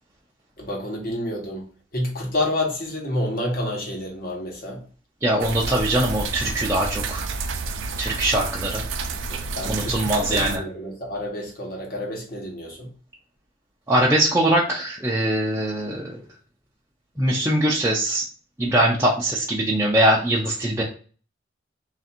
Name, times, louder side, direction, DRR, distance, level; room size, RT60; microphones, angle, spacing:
voice 1, 0.6-1.7 1.9-4.8 9.3-12.9, left 1 dB, 50° left, -1 dB, 1.1 m, -29 dB
voice 2, 5.2-7.2 8.0-8.8 9.7-10.6 13.9-16.2 17.2-18.2 18.6-20.8, right 1 dB, 15° right, -5 dB, 0.5 m, -22 dB
sound 1, 5.4-10.6, right 4 dB, 85° right, 0.5 m, -30 dB
3.4 x 2.5 x 4.2 m, 0.41 s
head